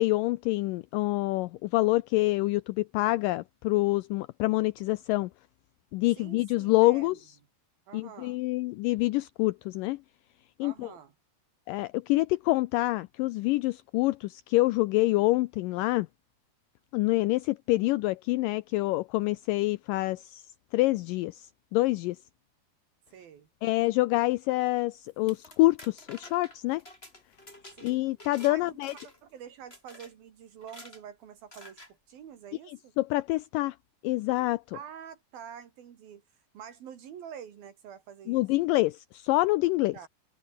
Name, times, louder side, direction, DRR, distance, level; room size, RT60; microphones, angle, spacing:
voice 1, 0.0-5.3 5.9-7.2 7.9-10.0 10.6-10.9 11.7-16.1 16.9-20.4 20.7-22.2 23.6-26.8 27.8-28.9 32.7-33.8 34.0-34.8 38.3-40.0, left 19 dB, 85° left, 2.0 m, -26 dB
voice 2, 6.2-7.2 7.9-8.4 10.6-11.1 23.1-23.5 27.8-28.0 28.5-28.8 29.2-32.9 34.7-36.2 36.5-38.5 39.9-40.1, right 8 dB, 70° right, 4.1 m, -47 dB
sound 1, 25.1-28.5 28.8-29.3 29.7-30.1 30.6-31.0 31.5-31.9, left 1 dB, 15° left, 7.2 m, -50 dB
omnidirectional pair, 4.4 m